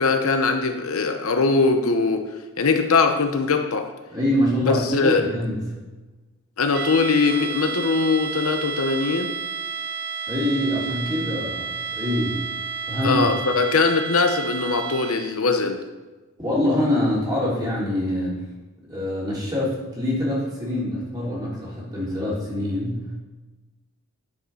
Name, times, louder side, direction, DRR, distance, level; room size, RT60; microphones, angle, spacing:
voice 1, 0.0-2.2 2.6-3.9 4.7-5.2 6.6-9.3 13.0-15.8, left 4 dB, 75° left, 6 dB, 0.9 m, -21 dB
voice 2, 4.1-5.6 10.3-12.4 12.9-13.3 16.4-18.5 18.9-23.1, left 1 dB, 20° right, -7 dB, 3.5 m, -24 dB
sound 1, 6.7-15.4, right 5 dB, 50° right, 0.4 m, -31 dB
10.5 x 5.5 x 5.6 m, 1.2 s
head